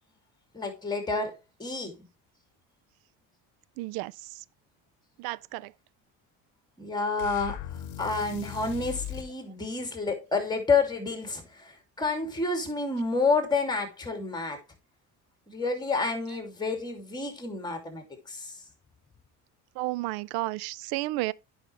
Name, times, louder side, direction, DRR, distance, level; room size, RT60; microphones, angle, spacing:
voice 1, 0.5-1.3 1.6-1.9 6.8-7.5 8.0-11.7 12.0-14.6 15.5-18.5, left 4 dB, 10° left, 2.7 m, -29 dB
voice 2, 3.8-4.1 5.2-5.7 19.8-21.3, right 19 dB, 75° right, 0.5 m, -32 dB
sound 1, 7.2-9.3, left 11 dB, 85° left, 0.9 m, -38 dB
9.3 x 5.5 x 3.3 m
supercardioid pair, 95°, 36 cm